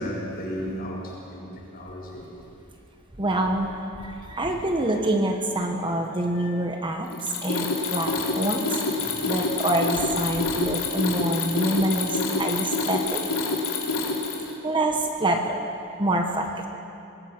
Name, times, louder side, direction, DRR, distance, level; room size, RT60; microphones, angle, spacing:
voice 1, 0.0-2.3 6.3-6.6 8.1-8.2 9.0-9.3 13.3-14.0 14.3-14.6, equal, 45° left, -3 dB, 6.2 m, -36 dB
voice 2, 3.2-13.2 14.6-15.6 16.0-16.7, right 1 dB, 25° right, 3 dB, 1.2 m, -26 dB
Mechanisms, 7.1-14.5, left 3 dB, 75° left, 3.5 m, -27 dB
24.0 x 20.0 x 6.0 m, 2.7 s
head